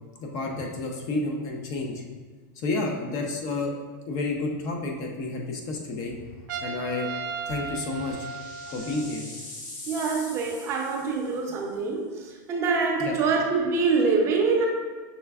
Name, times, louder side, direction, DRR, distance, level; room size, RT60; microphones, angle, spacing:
voice 1, 0.2-2.0 2.5-3.7 4.1-6.2 6.6-7.1 7.5-8.3 8.7-9.3 13.0-13.2, left 2 dB, 35° left, 1 dB, 0.6 m, -30 dB
Trumpet, 6.5-9.2, right 5 dB, 80° right, 0.5 m, -35 dB
sound 1, 7.0-11.6, left 2 dB, 80° left, 1.5 m, -43 dB
voice 2, 9.9-14.7, right 4 dB, 30° right, 1 dB, 0.5 m, -25 dB
5.7 x 3.2 x 2.3 m, 1.4 s
supercardioid pair, 150°, 10 cm